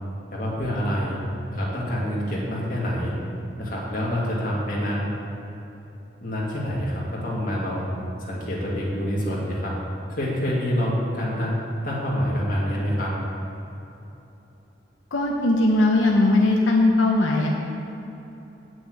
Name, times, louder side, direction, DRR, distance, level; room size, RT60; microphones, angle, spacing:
voice 1, 0.3-1.2 1.5-3.1 3.6-5.1 6.2-7.9 8.2-9.7 10.1-11.6 11.8-13.1, equal, 45° left, -5 dB, 2.3 m, -26 dB
voice 2, 15.1-17.5, left 2 dB, 85° left, -1 dB, 1.0 m, -19 dB
8.3 x 6.2 x 8.1 m, 3.0 s
head